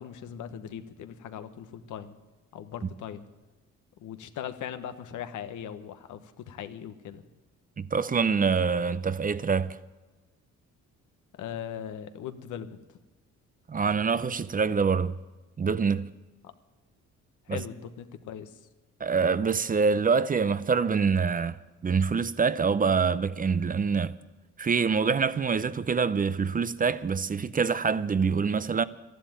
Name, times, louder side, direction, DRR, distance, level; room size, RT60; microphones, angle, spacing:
voice 1, 0.0-2.2 2.5-3.3 4.0-7.2 11.4-12.8 17.5-18.6, left 9 dB, 80° left, 1.2 m, -39 dB
voice 2, 7.8-9.8 13.7-15.1 15.6-16.1 17.5-17.6 19.0-24.2 24.6-28.8, right 5 dB, 30° right, 0.6 m, -25 dB
13.0 x 11.5 x 9.0 m
cardioid pair, 90°, 30 cm